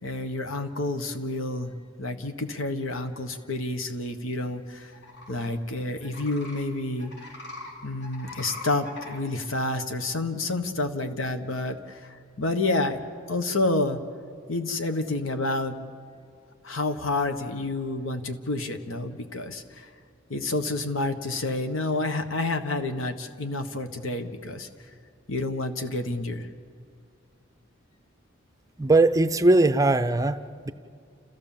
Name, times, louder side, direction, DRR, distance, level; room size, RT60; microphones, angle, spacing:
voice 1, 0.0-1.7 2.0-4.9 5.3-7.1 7.8-13.0 13.3-14.0 14.5-15.7 16.6-19.9 20.3-24.7 25.3-26.5, left 2 dB, 85° left, 7 dB, 1.5 m, -29 dB
sound 1, 4.9-5.4 6.0-6.6 7.0-7.7 8.0-9.2, left 2 dB, 55° left, 4.2 m, -41 dB
voice 2, 28.8-30.4 30.7-30.8, right 2 dB, 15° right, 10 dB, 0.5 m, -20 dB
29.5 x 14.5 x 7.4 m, 2.3 s
head